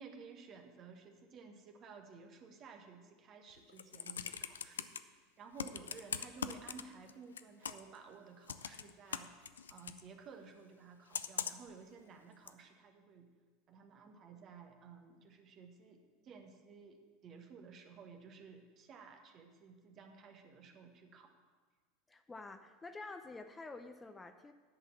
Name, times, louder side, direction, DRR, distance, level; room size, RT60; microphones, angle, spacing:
voice 1, 0.0-4.9 5.4-13.3 13.7-21.3, right 5 dB, 45° right, 4 dB, 1.4 m, -55 dB
Computer keyboard, 3.6-5.0 5.6-7.1 7.4-8.0 8.5-10.0 11.1-11.7 12.5-12.6, left 8 dB, 85° left, 0.4 m, -41 dB
voice 2, 22.1-24.5, left 3 dB, 15° left, 8 dB, 0.6 m, -49 dB
10.5 x 5.6 x 7.2 m, 1.5 s
hypercardioid pair, 85°, 0 cm